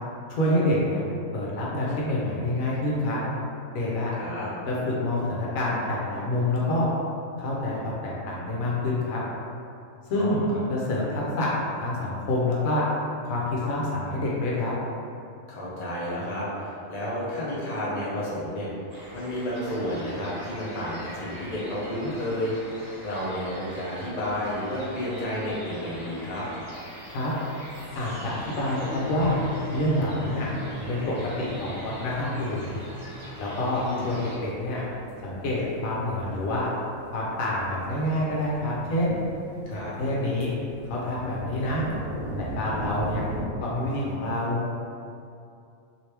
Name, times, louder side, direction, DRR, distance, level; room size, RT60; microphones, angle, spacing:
voice 1, 0.3-1.0 1.3-3.2 3.7-4.1 4.7-6.9 7.4-9.2 10.1-10.4 10.7-12.8 13.2-14.7 27.1-27.3 27.9-29.4 29.7-30.5 30.9-31.0 31.4-32.8 33.4-34.8 35.2-36.7 37.1-39.2 39.7-40.5 40.9-41.8 42.4-43.2 43.6-44.6, left 1 dB, 75° left, -5 dB, 1.1 m, -27 dB
voice 2, 4.1-4.5 10.1-10.5 15.5-18.7 19.1-22.7 23.0-26.5 33.8-34.1 39.7-39.9, left 1 dB, 40° left, -7 dB, 0.6 m, -31 dB
sound 1, 18.9-34.4, equal, 35° right, 0.9 m, -43 dB
sound 2, 26.7-36.8, equal, 55° right, 0.3 m, -38 dB
sound 3, 27.7-43.4, right 1 dB, 85° right, 1.0 m, -40 dB
2.9 x 2.8 x 3.3 m, 2.5 s
omnidirectional pair, 1.4 m